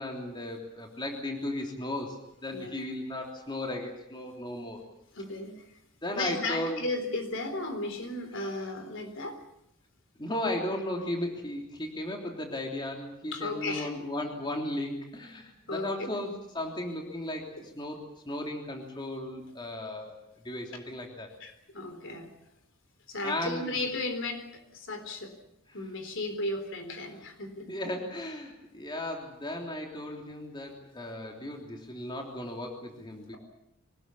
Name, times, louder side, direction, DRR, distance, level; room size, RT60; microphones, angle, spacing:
voice 1, 0.0-4.8 6.0-6.8 8.3-8.5 10.2-18.0 18.2-20.2 20.4-21.3 23.2-23.8 27.7-33.4, left 1 dB, 20° left, 2 dB, 3.2 m, -35 dB
voice 2, 5.1-5.7 6.1-9.4 13.3-13.9 15.7-16.3 17.6-17.7 21.4-22.3 23.1-25.3 25.7-27.7, left 2 dB, 60° left, 7 dB, 3.9 m, -35 dB
24.0 x 19.5 x 8.4 m, 0.78 s
head